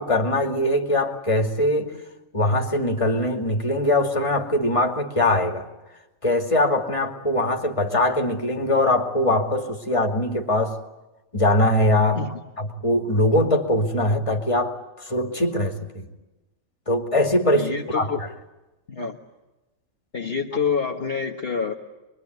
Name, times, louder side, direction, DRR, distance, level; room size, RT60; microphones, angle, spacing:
voice 1, 0.0-1.9 2.3-5.7 6.2-10.8 11.3-12.2 12.8-16.1 16.9-18.1, left 1 dB, 20° left, 3 dB, 2.6 m, -22 dB
voice 2, 17.5-18.2 18.9-19.2 20.1-21.7, left 5 dB, 45° left, 0 dB, 1.7 m, -27 dB
25.0 x 23.5 x 9.5 m, 1.0 s
omnidirectional pair, 1.5 m